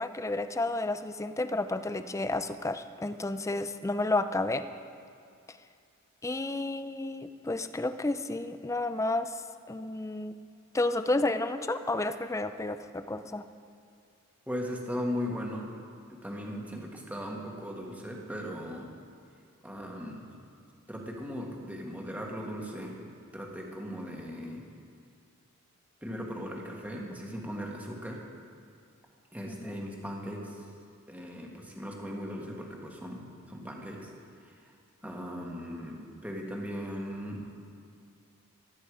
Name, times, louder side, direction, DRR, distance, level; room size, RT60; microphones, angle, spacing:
voice 1, 0.0-4.7 5.5-5.6 6.2-10.4 10.7-13.4 29.5-29.8 35.0-35.2, left 2 dB, 15° left, 11 dB, 0.4 m, -31 dB
voice 2, 14.5-15.7 16.2-18.9 19.6-20.3 20.9-23.0 23.3-24.6 26.0-28.2 29.3-30.7 31.1-34.1 34.4-34.5 35.0-37.5, equal, 5° right, -1 dB, 1.7 m, -38 dB
16.0 x 13.0 x 5.0 m, 2.4 s
head